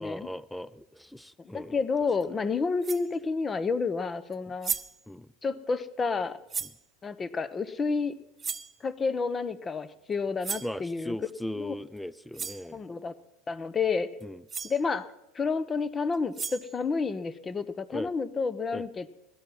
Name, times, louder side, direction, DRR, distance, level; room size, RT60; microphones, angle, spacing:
voice 1, 0.0-1.8 5.1-5.3 10.6-12.8 14.2-14.4 17.9-18.1 18.7-18.9, left 1 dB, 5° left, 20 dB, 0.5 m, -38 dB
voice 2, 1.4-4.7 5.4-6.4 7.0-8.2 8.8-11.2 11.6-11.7 12.7-13.1 13.5-14.2 14.6-15.1 15.3-19.1, left 4 dB, 25° left, 15 dB, 0.9 m, -30 dB
sound 1, 2.2-2.3 2.8-3.1 4.3-4.4 4.6-5.0 6.5-6.8 8.4-8.8 10.4-10.8 12.0-12.1 12.3-12.7 14.2-14.3 14.5-14.8 16.1-16.8, right 6 dB, 25° right, 0.8 m, -35 dB
16.5 x 12.0 x 5.6 m, 0.89 s
hypercardioid pair, 95°, 0 cm